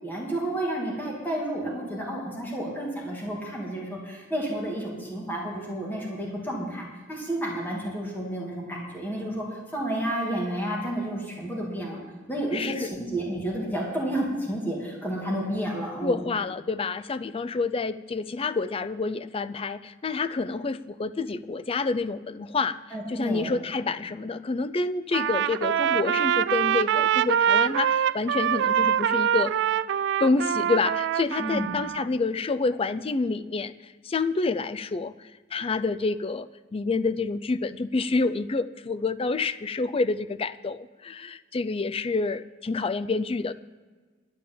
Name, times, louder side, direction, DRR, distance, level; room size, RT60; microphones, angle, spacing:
voice 1, 0.0-12.0 12.3-16.2 22.9-23.5 31.4-31.8, right 1 dB, 10° left, -3 dB, 2.6 m, -31 dB
voice 2, 12.5-12.9 16.0-22.8 23.1-29.5 30.2-33.7 34.0-43.5, left 3 dB, 30° left, 12 dB, 0.4 m, -28 dB
Trumpet, 25.1-32.0, right 9 dB, 60° right, 0.3 m, -24 dB
11.5 x 8.4 x 7.6 m, 1.4 s
head